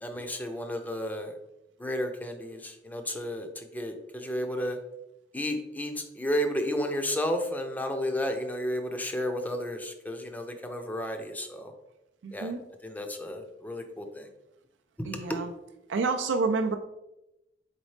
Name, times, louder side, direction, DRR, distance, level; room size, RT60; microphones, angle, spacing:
voice 1, 0.0-1.3 1.8-4.8 5.3-11.7 12.3-12.5 12.8-14.3 15.0-15.4, equal, 10° left, 5 dB, 0.5 m, -32 dB
voice 2, 12.2-12.6 15.1-15.5 15.9-16.8, right 4 dB, 90° right, 5 dB, 0.4 m, -28 dB
4.1 x 4.0 x 3.2 m, 0.89 s
head